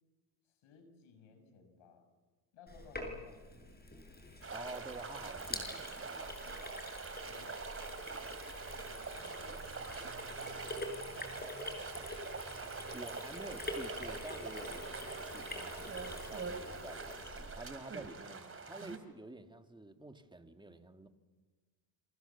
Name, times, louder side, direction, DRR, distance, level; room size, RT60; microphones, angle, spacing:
voice 1, 0.4-2.1 2.5-3.4 4.5-4.7 7.2-7.6 8.6-9.6 9.8-12.0, left 5 dB, 70° left, 6.7 m, -60 dB
Sink (filling or washing), 2.7-17.8, left 2 dB, 20° left, 6.3 m, -46 dB
sound 1, 4.4-19.0, right 4 dB, 25° right, 3.2 m, -44 dB
voice 2, 4.5-6.7 12.9-21.1, right 2 dB, 10° right, 2.2 m, -50 dB
27.5 x 25.5 x 7.2 m
cardioid pair, 95°, 50 cm